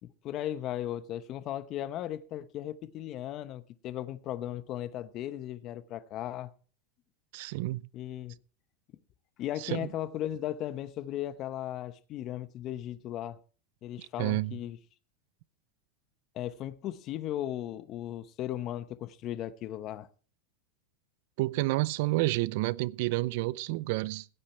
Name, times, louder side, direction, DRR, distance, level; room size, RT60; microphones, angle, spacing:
voice 1, 0.0-6.5 7.9-8.3 9.4-13.4 13.8-14.8 16.3-20.1, left 12 dB, 40° left, 0.8 m, -36 dB
voice 2, 7.3-7.9 9.6-9.9 14.2-14.6 21.4-24.3, right 20 dB, 65° right, 0.5 m, -30 dB
15.5 x 8.6 x 4.4 m
supercardioid pair, 125°, 0 cm